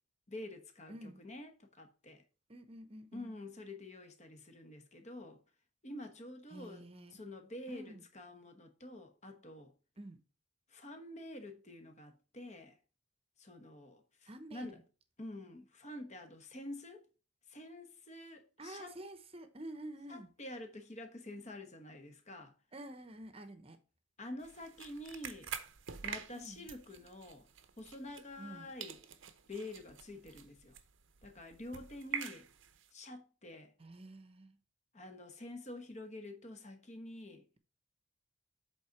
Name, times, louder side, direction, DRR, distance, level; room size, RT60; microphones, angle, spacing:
voice 1, 0.3-2.2 3.1-5.4 5.8-9.7 10.7-12.8 13.4-14.8 15.2-17.1 17.5-19.0 20.1-22.5 24.2-25.5 26.0-27.5 27.8-29.0 29.5-30.8 31.2-32.5 32.9-33.7 34.9-37.5, left 1 dB, 30° left, 1.1 m, -48 dB
voice 2, 0.9-1.2 2.5-3.3 6.5-7.2 7.7-8.0 10.0-10.2 14.3-14.7 18.6-20.3 22.7-23.8 26.3-26.7 28.4-28.7 33.8-34.6, right 1 dB, 25° right, 0.9 m, -49 dB
sound 1, 24.4-28.5 28.8-32.9, right 7 dB, 60° right, 0.7 m, -47 dB
7.9 x 4.0 x 5.8 m
head